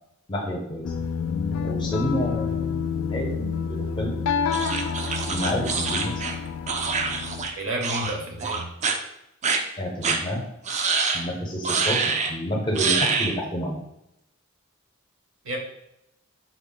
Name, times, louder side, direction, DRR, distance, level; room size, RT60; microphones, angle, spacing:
voice 1, 0.3-0.9 1.6-2.7 3.1-4.1 5.3-6.1 9.8-10.4 11.1-13.8, equal, 25° left, 0 dB, 0.6 m, -29 dB
sound 1, 0.8-7.5, left 6 dB, 75° left, 0.3 m, -28 dB
sound 2, 4.5-7.5 7.8-8.1 8.4-9.0 9.4-9.6 10.0-10.2 10.7-11.2 11.6-12.3 12.8-13.3, right 5 dB, 35° right, 0.3 m, -25 dB
voice 2, 7.6-8.7 15.4-15.6, right 1 dB, 65° right, 1 dB, 0.7 m, -30 dB
3.6 x 2.0 x 3.7 m, 0.82 s
head